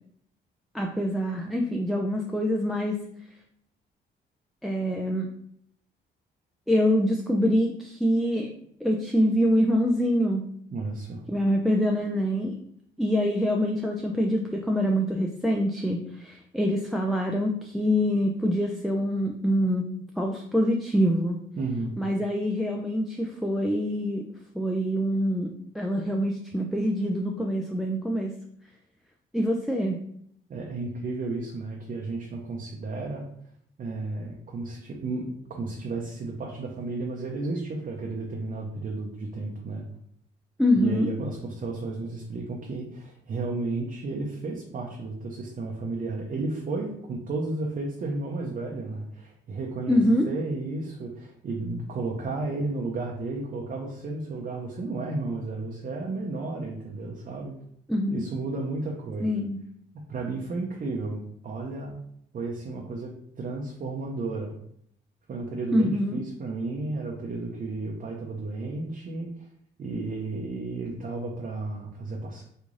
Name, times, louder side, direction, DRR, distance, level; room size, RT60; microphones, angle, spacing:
voice 1, 0.7-3.0 4.6-5.3 6.7-8.5 8.8-10.5 11.3-12.6 13.0-19.9 20.2-21.4 22.0-24.2 24.5-28.4 29.3-30.0 40.6-41.1 49.9-50.3 57.9-58.2 59.2-59.6 65.7-66.2, equal, ahead, 1 dB, 0.3 m, -25 dB
voice 2, 10.7-11.3 21.6-22.0 30.5-33.3 33.8-39.9 40.8-50.0 50.3-57.5 58.1-59.4 60.1-62.0 62.3-63.1 63.4-64.5 65.3-69.5 69.8-72.4, right 3 dB, 45° right, -1 dB, 0.7 m, -33 dB
3.1 x 2.5 x 3.7 m, 0.69 s
cardioid pair, 90°, 20 cm